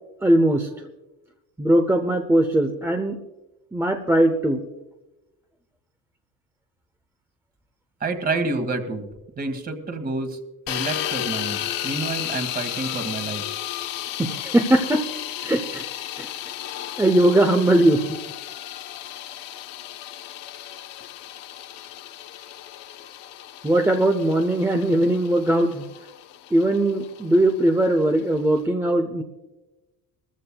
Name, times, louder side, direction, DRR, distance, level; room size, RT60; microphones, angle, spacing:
voice 1, 0.2-0.7 1.6-3.2 3.7-4.6 14.2-15.0 15.4-15.8 16.2-16.3 17.0-18.0 23.6-25.8 26.5-29.2, right 1 dB, 10° right, 5 dB, 0.7 m, -20 dB
voice 2, 8.0-9.1 9.4-10.4 10.7-13.4, right 3 dB, 25° right, 7 dB, 1.7 m, -28 dB
sound 1, 10.7-28.6, left 13 dB, 75° left, 1.0 m, -34 dB
21.5 x 14.5 x 2.3 m, 1.0 s
cardioid pair, 145°, 34 cm